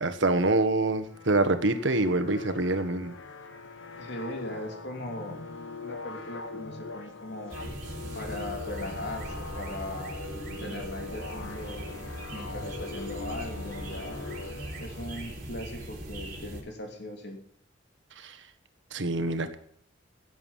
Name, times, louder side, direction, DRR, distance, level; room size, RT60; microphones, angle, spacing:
voice 1, 0.0-3.1 18.2-18.4 18.9-19.5, right 2 dB, 70° right, 9 dB, 1.5 m, -26 dB
sound 1, 1.1-15.2, left 3 dB, 80° left, 1.8 m, -42 dB
voice 2, 4.0-5.4 5.8-7.6 8.1-10.1 10.6-11.9 12.3-14.2 14.8-17.4, left 1 dB, 60° left, 3 dB, 3.2 m, -39 dB
sound 2, 7.5-16.6, right 1 dB, 45° right, 3.8 m, -40 dB
16.5 x 8.2 x 7.4 m, 0.66 s
head